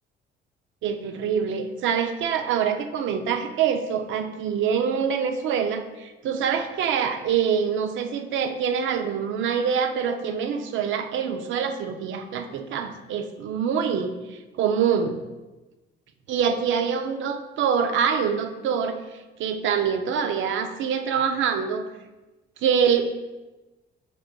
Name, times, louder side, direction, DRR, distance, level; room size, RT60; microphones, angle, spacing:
voice 1, 0.8-15.2 16.3-21.9 22.6-23.1, right 7 dB, 75° right, 7 dB, 0.5 m, -25 dB
5.1 x 4.5 x 2.2 m, 1.1 s
cardioid pair, 90°, 20 cm